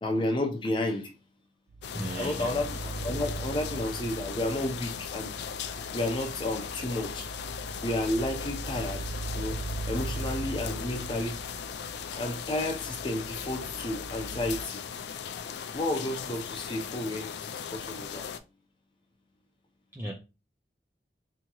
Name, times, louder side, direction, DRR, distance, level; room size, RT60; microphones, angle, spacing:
voice 1, 0.0-1.1 2.1-2.8 3.0-5.3 5.9-7.3 7.8-9.0 9.4-9.6 9.9-11.4 12.1-14.8 15.7-18.3, left 1 dB, 30° left, 0.7 m, -31 dB
sound 1, 1.7-14.6, right 2 dB, 80° right, 0.4 m, -40 dB
sound 2, 1.8-18.4, left 7 dB, 80° left, 0.4 m, -38 dB
voice 2, 1.9-2.6 19.9-20.1, right 1 dB, 15° right, 0.4 m, -35 dB
3.6 x 2.9 x 2.9 m
head